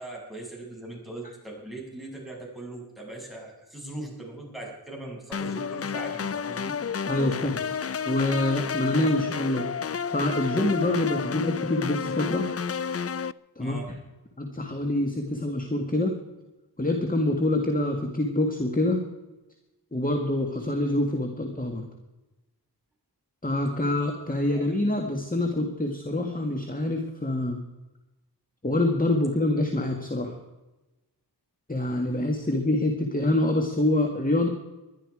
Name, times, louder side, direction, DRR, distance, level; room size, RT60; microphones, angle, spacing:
voice 1, 0.0-6.7 13.6-13.9 24.5-24.6, right 2 dB, ahead, -2 dB, 7.5 m, -40 dB
sound 1, 5.3-13.3, left 6 dB, 40° left, 0.4 m, -31 dB
voice 2, 7.1-7.6 8.1-9.7 10.1-12.5 13.6-13.8 14.4-16.2 16.8-19.0 19.9-21.8 23.4-27.6 28.6-30.3 31.7-34.5, left 1 dB, 20° left, 3 dB, 1.9 m, -26 dB
20.5 x 12.0 x 4.9 m, 1.1 s
wide cardioid pair, 50°, 40 cm